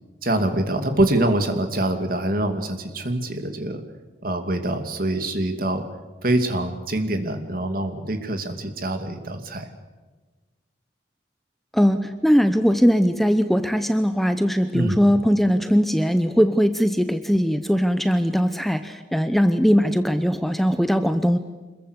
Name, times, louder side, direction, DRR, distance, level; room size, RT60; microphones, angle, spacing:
voice 1, 0.2-3.8 4.2-5.8 6.2-9.7 14.7-15.0, right 1 dB, 50° right, 6 dB, 2.6 m, -24 dB
voice 2, 11.7-21.4, equal, ahead, 9 dB, 0.8 m, -20 dB
26.5 x 21.5 x 8.2 m, 1.3 s
head